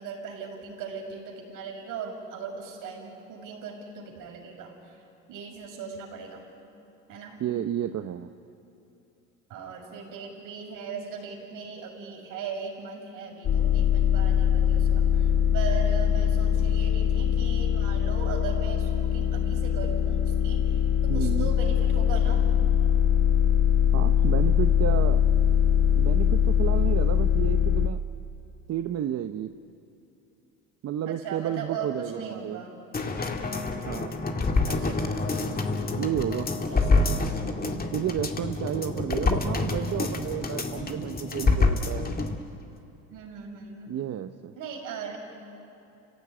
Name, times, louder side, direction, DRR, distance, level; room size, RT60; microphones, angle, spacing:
voice 1, 0.0-5.0 5.3-6.4 7.1-7.4 9.5-22.4 31.1-32.8 34.6-35.5 36.7-37.2 38.7-38.9 43.1-44.0 44.6-45.2, right 5 dB, 65° right, 1 dB, 6.3 m, -38 dB
voice 2, 7.4-8.3 21.1-21.5 23.9-25.2 26.0-28.0 28.7-29.5 30.8-32.6 33.8-34.2 35.9-36.5 37.9-42.1 43.9-44.5, right 11 dB, 45° right, 9 dB, 0.9 m, -31 dB
sound 1, 13.4-27.9, left 9 dB, 45° left, 1.4 m, -22 dB
sound 2, 32.9-42.4 42.7-42.8, left 3 dB, 25° left, 2.3 m, -27 dB
29.5 x 16.0 x 9.8 m, 2.8 s
supercardioid pair, 85°, 35 cm